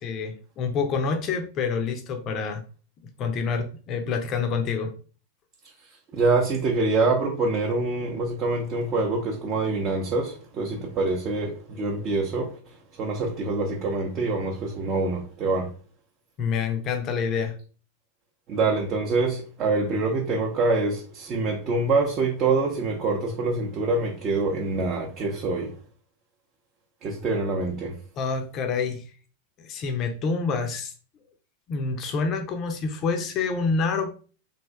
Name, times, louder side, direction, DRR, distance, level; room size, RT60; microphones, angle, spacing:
voice 1, 0.0-2.6 3.2-4.9 16.4-17.6 28.2-29.0 29.6-30.9 31.7-34.1, left 5 dB, 35° left, 0.6 m, -27 dB
voice 2, 6.1-12.5 13.0-15.7 18.5-25.8 27.0-28.0, right 3 dB, 30° right, 0.7 m, -25 dB
3.4 x 2.5 x 3.3 m
figure-of-eight pair, 90°, 0 cm